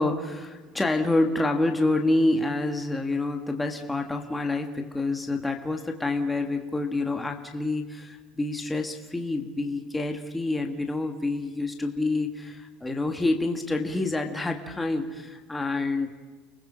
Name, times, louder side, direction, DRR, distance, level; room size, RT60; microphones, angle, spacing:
voice 1, 0.0-16.1, left 2 dB, 5° left, 3 dB, 1.5 m, -27 dB
30.0 x 20.0 x 5.0 m, 1.3 s
cardioid pair, 165°, 0 cm